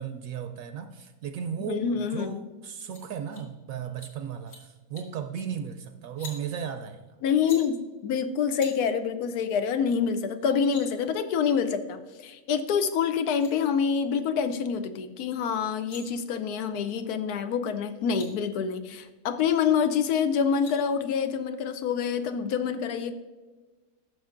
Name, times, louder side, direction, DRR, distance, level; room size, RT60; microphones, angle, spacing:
voice 1, 0.0-7.0, right 8 dB, 70° right, 8 dB, 0.9 m, -35 dB
voice 2, 1.6-2.4 7.2-23.1, left 6 dB, 85° left, 9 dB, 1.2 m, -27 dB
sound 1, 2.9-3.0 3.3-3.5 3.8-4.1 4.4-4.6 5.0-5.2 6.0-6.4 7.3-7.6 8.6-8.7 10.0-10.1 10.4-10.8 12.9-13.0 13.2-13.5 15.6-16.0 17.7-17.8 17.9-18.3 20.2-20.8, left 3 dB, 55° left, 2.1 m, -46 dB
13.0 x 6.4 x 2.5 m, 1.3 s
omnidirectional pair, 1.6 m